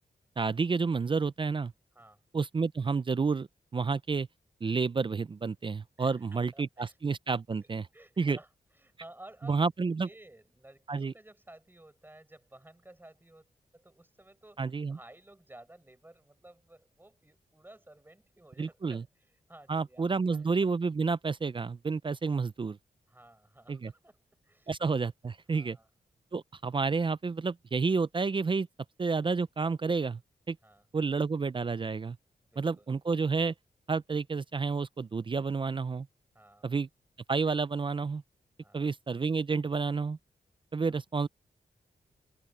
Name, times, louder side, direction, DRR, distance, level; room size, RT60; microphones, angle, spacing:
voice 1, 0.4-1.7 2.3-4.3 4.6-7.9 8.2-8.4 9.4-10.1 10.9-11.1 14.6-15.0 18.6-19.0 19.7-22.8 23.7-23.9 24.7-25.8 26.3-28.7 29.0-30.2 30.5-30.6 30.9-32.2 32.6-33.5 33.9-36.1 36.6-36.9 37.3-38.2 38.7-40.2 40.7-41.3, right 4 dB, 30° right, 0.4 m, -30 dB
voice 2, 6.0-7.0 7.6-9.6 10.0-20.5 23.1-24.7 25.5-25.9 30.6-30.9 32.4-32.9 36.3-36.7 38.6-38.9 40.8-41.0, right 1 dB, 10° right, 5.4 m, -55 dB
open air
wide cardioid pair, 145°, 17 cm